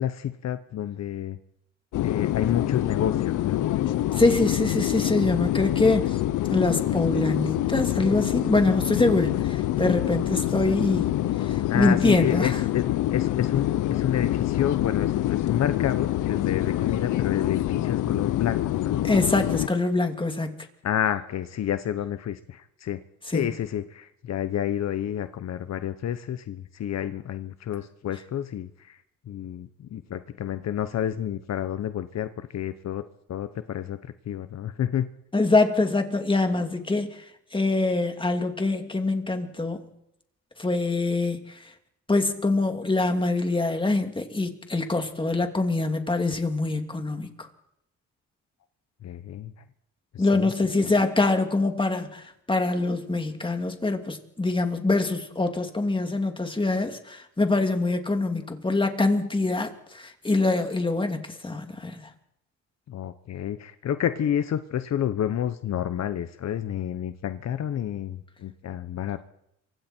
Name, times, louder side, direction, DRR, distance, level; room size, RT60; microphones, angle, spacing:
voice 1, 0.0-1.4 2.0-3.7 11.7-12.8 13.1-19.0 20.8-23.0 23.3-29.0 29.3-33.0 33.3-35.1 49.0-49.5 50.1-50.5 50.8-50.9 62.9-69.3, left 10 dB, 60° left, 1.1 m, -29 dB
sound 1, 1.9-19.7, left 14 dB, 80° left, 0.9 m, -26 dB
voice 2, 4.1-6.2 6.5-11.1 11.5-12.6 19.0-20.7 23.3-23.5 35.3-37.2 37.5-39.9 40.6-41.6 42.1-47.5 50.2-62.1, left 2 dB, 15° left, 2.9 m, -24 dB
27.5 x 25.0 x 4.6 m
cardioid pair, 90°, 30 cm